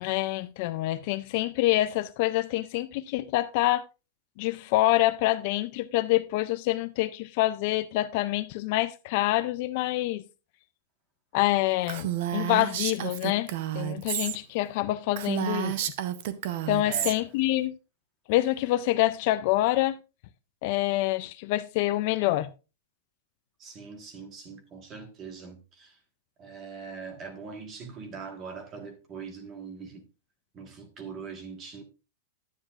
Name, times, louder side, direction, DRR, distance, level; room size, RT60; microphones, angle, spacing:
voice 1, 0.0-3.8 4.4-10.2 11.3-12.1 12.3-15.9 16.7-17.7 18.3-20.0 20.6-22.5, left 16 dB, 40° left, 0.3 m, -26 dB
Female speech woman speaking, 11.9-14.4 14.7-14.8 15.1-17.1, right 12 dB, 45° right, 0.7 m, -31 dB
voice 2, 16.8-17.1 23.6-26.0 26.4-30.1 30.5-31.8, right 5 dB, 20° right, 1.4 m, -42 dB
9.9 x 9.6 x 2.4 m
supercardioid pair, 180°, 0 cm